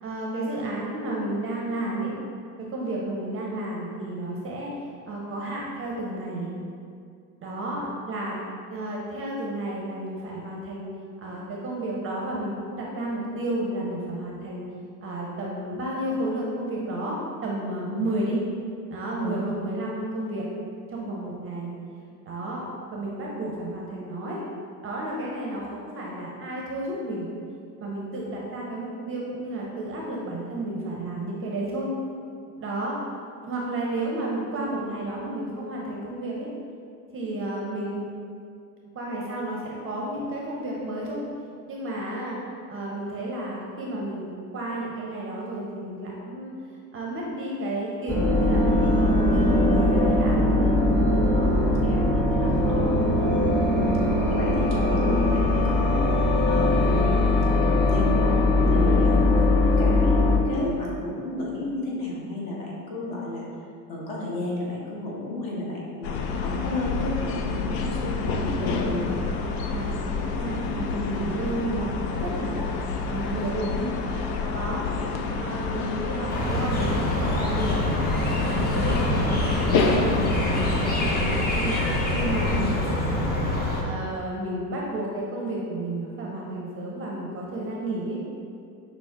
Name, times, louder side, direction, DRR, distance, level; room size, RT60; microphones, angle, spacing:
voice 1, 0.0-2.1 2.6-4.7 5.1-6.5 7.4-8.4 8.7-10.9 11.2-14.7 15.0-17.2 17.4-18.4 18.9-20.5 20.9-21.7 22.3-22.6 22.9-24.4 24.8-27.3 27.8-31.9 32.6-33.0 33.5-36.5 37.1-38.1 38.9-41.2 41.7-42.4 42.7-46.5 46.9-50.4 51.3-51.8 52.3-53.0 69.7-72.6 73.1-73.9 74.5-74.9 75.3-77.8 78.5-81.7 82.1-82.6 83.2-88.2, right 1 dB, 25° right, -3 dB, 0.6 m, -32 dB
sound 1, 48.1-60.4, left 2 dB, 5° left, 0.9 m, -21 dB
voice 2, 52.5-53.3 53.7-54.0 54.3-56.1 56.5-58.3 58.7-59.3 59.8-63.5 63.9-69.2 82.4-82.7, left 2 dB, 50° left, -4 dB, 1.2 m, -32 dB
sound 2, 66.0-82.6, left 4 dB, 80° left, 0.6 m, -28 dB
sound 3, 76.3-83.8, left 1 dB, 20° left, 0.6 m, -26 dB
5.9 x 2.0 x 3.4 m, 2.4 s
hypercardioid pair, 95°, 48 cm